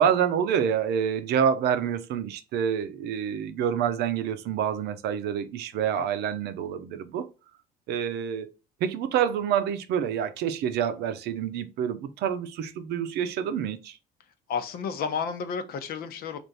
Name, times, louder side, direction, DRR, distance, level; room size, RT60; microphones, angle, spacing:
voice 1, 0.0-7.3 7.9-8.5 8.8-14.0, right 8 dB, 75° right, 0.6 m, -27 dB
voice 2, 14.5-16.4, left 6 dB, 65° left, 0.8 m, -31 dB
3.4 x 2.5 x 4.0 m
cardioid pair, 110°, 17 cm